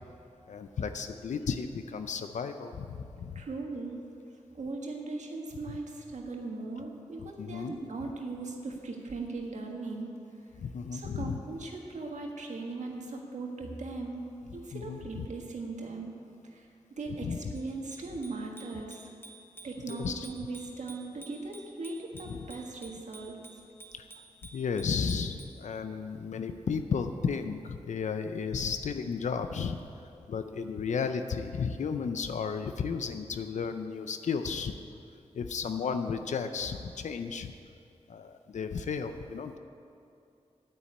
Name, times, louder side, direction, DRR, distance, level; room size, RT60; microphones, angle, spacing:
voice 1, 0.5-3.4 5.7-5.8 7.4-7.7 10.6-11.4 14.7-15.0 17.2-17.5 19.9-20.3 22.3-22.5 24.0-24.1 24.5-29.8 30.3-34.8 35.3-37.5 38.1-39.6, left 6 dB, 85° left, 8 dB, 0.5 m, -33 dB
voice 2, 3.3-4.0 4.5-10.1 10.9-16.2 16.5-16.7 17.0-19.1 19.6-23.4, right 3 dB, 80° right, 1 dB, 1.7 m, -39 dB
Bicycle bell, 17.5-25.6, right 1 dB, 15° left, 1.4 m, -53 dB
9.5 x 9.0 x 8.7 m, 2.6 s
cardioid pair, 65°, 12 cm